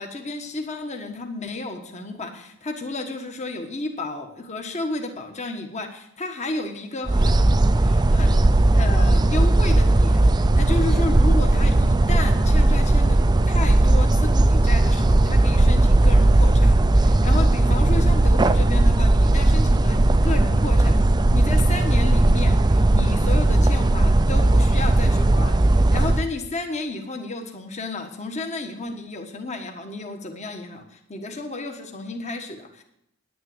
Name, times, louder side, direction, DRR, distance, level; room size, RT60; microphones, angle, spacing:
voice 1, 0.0-21.0 21.3-32.8, left 2 dB, 30° left, 4 dB, 1.3 m, -32 dB
sound 1, 7.1-26.3, right 2 dB, 20° right, 0.5 m, -17 dB
10.0 x 10.0 x 7.8 m, 0.78 s
head